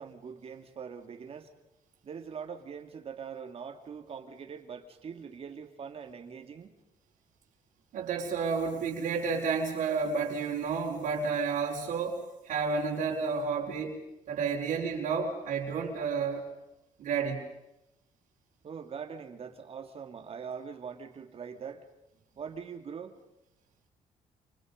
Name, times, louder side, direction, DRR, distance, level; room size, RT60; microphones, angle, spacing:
voice 1, 0.0-1.5 2.0-6.7 18.6-21.9 22.4-23.2, right 6 dB, 45° right, 6 dB, 3.1 m, -42 dB
voice 2, 7.9-14.0 14.3-16.5 17.0-17.4, right 5 dB, 75° right, -2 dB, 4.3 m, -31 dB
28.5 x 27.5 x 5.5 m, 0.91 s
cardioid pair, 120°, 14 cm